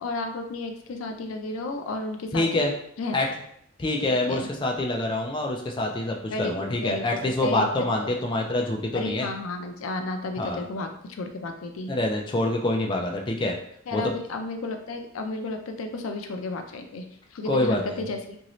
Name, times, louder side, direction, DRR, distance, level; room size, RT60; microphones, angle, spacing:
voice 1, 0.0-3.1 4.3-4.5 6.3-8.1 8.9-11.9 13.9-17.0 17.3-18.4, left 2 dB, 85° left, 5 dB, 0.4 m, -33 dB
voice 2, 2.3-2.7 3.1-3.3 3.8-9.3 10.4-10.6 11.9-13.6 13.9-14.1 17.5-18.0, left 1 dB, 25° left, 1 dB, 0.4 m, -26 dB
2.9 x 2.6 x 3.0 m, 0.68 s
head